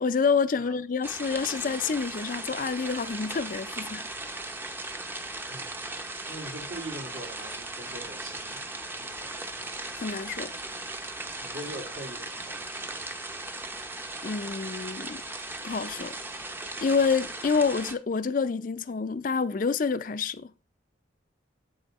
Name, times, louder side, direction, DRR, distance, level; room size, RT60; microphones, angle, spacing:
voice 1, 0.0-4.1 10.0-10.5 14.2-15.2 15.6-16.2 16.8-20.5, left 5 dB, 45° left, 0.4 m, -28 dB
sound 1, 1.0-17.9, right 2 dB, 10° right, 0.5 m, -37 dB
voice 2, 5.5-5.8 6.3-8.6 9.0-9.3 11.4-12.7, right 1 dB, 80° right, 2.3 m, -42 dB
8.5 x 7.5 x 3.0 m
head